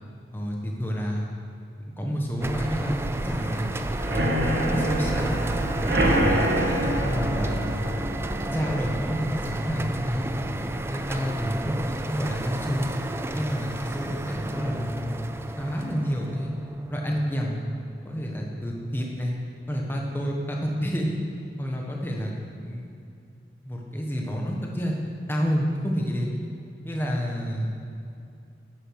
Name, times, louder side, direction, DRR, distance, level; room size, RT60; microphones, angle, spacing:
voice 1, 0.3-1.3 2.0-3.7 4.1-5.4 5.9-7.7 8.5-10.3 10.9-12.9 13.3-15.2 15.6-16.5 16.9-17.6 18.0-19.4 19.7-21.2 21.6-22.3 22.6-22.9 23.6-24.9 25.3-26.4 26.8-27.7, equal, 10° left, -1 dB, 1.3 m, -29 dB
sound 1, 2.4-17.8, right 1 dB, 15° right, 0.3 m, -32 dB
sound 2, 4.0-11.6 12.0-12.4 12.6-12.7 13.1-13.2, right 1 dB, 65° right, 1.5 m, -27 dB
10.0 x 9.0 x 6.5 m, 2.6 s
head